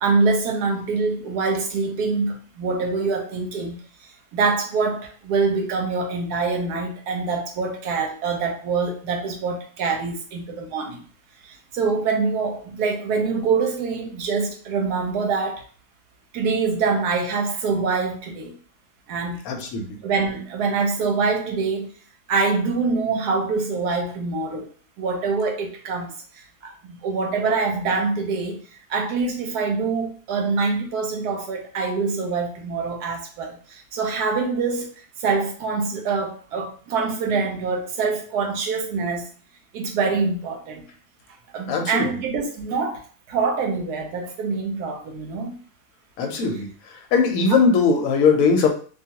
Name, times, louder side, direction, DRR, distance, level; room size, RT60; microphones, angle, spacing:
voice 1, 0.0-3.8 4.3-11.0 11.5-15.6 16.3-18.5 19.1-19.5 20.0-21.9 22.3-24.7 25.0-28.6 28.9-34.9 35.2-39.3 39.7-40.9 41.5-45.6 46.5-46.6, right 4 dB, 80° right, 1.1 m, -25 dB
voice 2, 19.5-20.0 41.7-42.1 46.2-46.7 47.1-48.7, left 5 dB, 70° left, 1.0 m, -19 dB
2.5 x 2.3 x 2.8 m
omnidirectional pair, 1.7 m